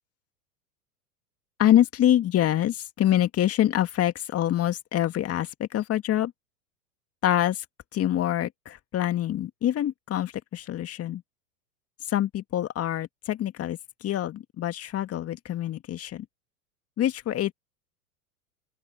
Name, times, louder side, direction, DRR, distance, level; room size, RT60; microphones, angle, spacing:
voice 1, 1.6-6.3 7.2-7.7 7.9-11.2 12.0-16.3 17.0-17.5, left 12 dB, 30° left, 2.1 m, -25 dB
open air
hypercardioid pair, 95°, 45 cm